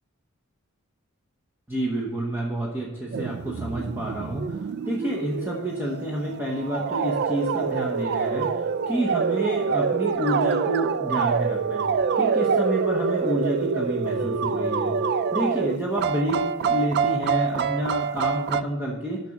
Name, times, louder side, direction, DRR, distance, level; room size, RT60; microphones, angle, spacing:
voice 1, 1.7-4.6 4.8-11.9 12.1-19.2, right 1 dB, 10° right, -4 dB, 1.0 m, -29 dB
sound 1, 3.1-18.6, right 5 dB, 50° right, 0.3 m, -26 dB
6.8 x 5.9 x 6.4 m, 1.1 s
head